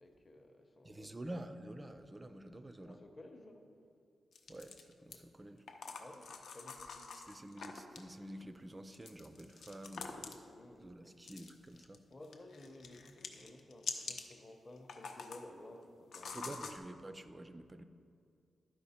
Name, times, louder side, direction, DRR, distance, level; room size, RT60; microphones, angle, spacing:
voice 1, 0.0-1.1 2.8-3.7 5.1-5.3 6.0-7.2 10.4-11.2 12.1-16.7, left 1 dB, 30° left, 4 dB, 0.7 m, -55 dB
voice 2, 0.8-3.0 4.5-5.6 7.1-10.4 10.8-12.0 16.3-17.8, right 1 dB, 15° right, 10 dB, 0.3 m, -49 dB
sound 1, 4.3-5.2 5.7-8.1 8.9-10.5 11.2-12.0 12.2-14.3 14.8-15.5 16.1-16.8, left 4 dB, 70° left, 0.6 m, -46 dB
11.5 x 5.0 x 4.2 m, 2.4 s
wide cardioid pair, 175°, 0 cm